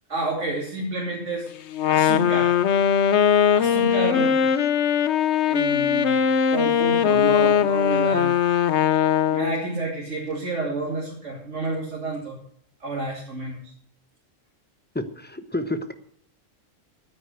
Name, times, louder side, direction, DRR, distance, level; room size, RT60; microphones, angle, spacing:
voice 1, 0.1-1.5 1.8-2.6 3.5-4.4 5.5-6.2 6.5-8.3 9.3-12.4 12.8-13.6, right 2 dB, 65° right, -2 dB, 3.0 m, -29 dB
Wind instrument woodwind instrument, 1.7-9.7, left 8 dB, 65° left, 0.9 m, -20 dB
voice 2, 14.9-15.9, left 1 dB, 10° left, 9 dB, 0.9 m, -30 dB
9.8 x 9.6 x 8.0 m, 0.67 s
omnidirectional pair, 1.3 m